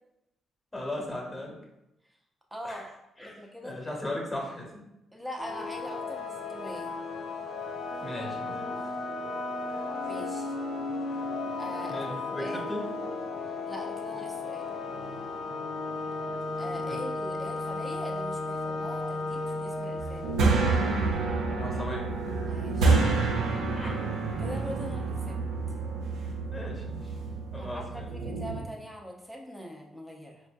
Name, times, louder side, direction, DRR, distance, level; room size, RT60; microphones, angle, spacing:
voice 1, 0.7-1.6 2.6-2.8 3.2-4.9 8.0-8.8 11.9-12.8 16.8-17.0 21.5-22.1 23.7-23.9 26.5-27.1 27.5-28.1, left 1 dB, 15° left, -1 dB, 1.0 m, -37 dB
voice 2, 2.5-2.9 3.2-3.7 5.1-7.0 10.0-10.5 11.6-12.7 13.7-14.7 16.6-20.3 22.5-23.2 24.4-25.4 27.6-30.4, equal, 5° right, 0 dB, 0.7 m, -42 dB
sound 1, 5.4-21.7, left 3 dB, 70° left, 0.5 m, -35 dB
sound 2, 20.0-28.6, right 3 dB, 90° right, 0.4 m, -28 dB
4.2 x 2.6 x 2.3 m, 0.88 s
cardioid pair, 90°, 0 cm